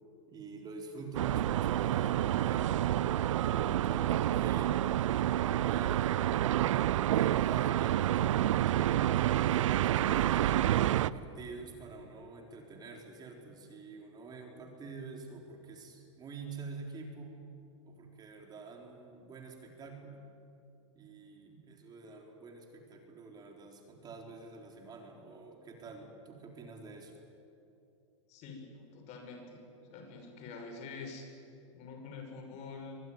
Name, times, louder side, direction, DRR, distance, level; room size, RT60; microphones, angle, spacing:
voice 1, 0.3-2.8 3.5-4.9 5.4-6.4 7.1-8.3 9.4-17.5 17.9-20.2 20.9-27.1, right 4 dB, 25° right, 2 dB, 4.1 m, -47 dB
sound 1, 1.1-11.1, right 12 dB, 75° right, 0.7 m, -28 dB
voice 2, 28.3-29.6 29.9-31.3 31.7-33.0, left 4 dB, 45° left, 4 dB, 6.3 m, -46 dB
24.0 x 20.5 x 9.6 m, 2.6 s
hypercardioid pair, 120°, 16 cm